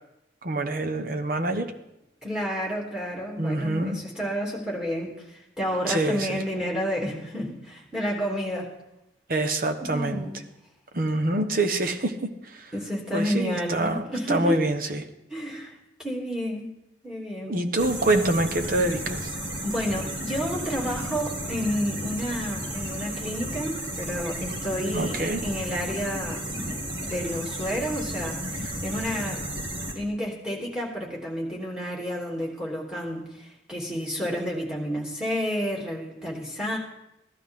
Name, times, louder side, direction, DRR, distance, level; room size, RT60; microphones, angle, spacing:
voice 1, 0.4-1.7 3.4-4.0 5.9-6.4 9.3-10.3 10.9-12.7 13.1-15.1 17.5-19.3 24.9-25.4, right 2 dB, 55° right, 5 dB, 1.2 m, -26 dB
voice 2, 2.2-8.7 9.9-10.4 12.7-14.6 15.3-16.7 17.0-17.6 19.6-29.4 29.9-36.8, equal, 5° right, -2 dB, 3.0 m, -30 dB
sound 1, 17.8-29.9, right 1 dB, 85° right, 2.6 m, -33 dB
16.0 x 12.5 x 3.8 m, 0.87 s
head